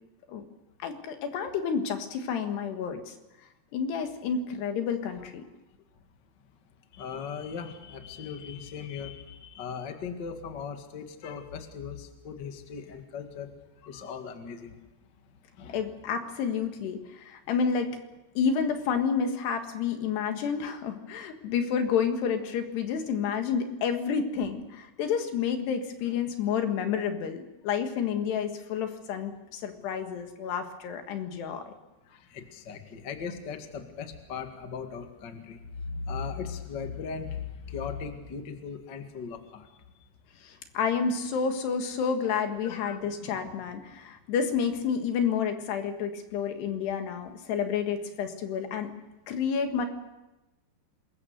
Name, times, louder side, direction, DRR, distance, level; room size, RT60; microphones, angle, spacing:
voice 1, 0.8-3.1 3.7-5.4 15.7-17.9 18.4-31.7 40.4-48.9 49.3-49.9, left 6 dB, 75° left, 6 dB, 3.7 m, -30 dB
voice 2, 6.9-13.5 13.8-14.8 15.6-15.8 32.1-39.7 42.7-43.5 43.8-44.0, left 6 dB, 40° left, 5 dB, 1.6 m, -38 dB
26.0 x 21.5 x 6.6 m, 1.0 s
omnidirectional pair, 4.9 m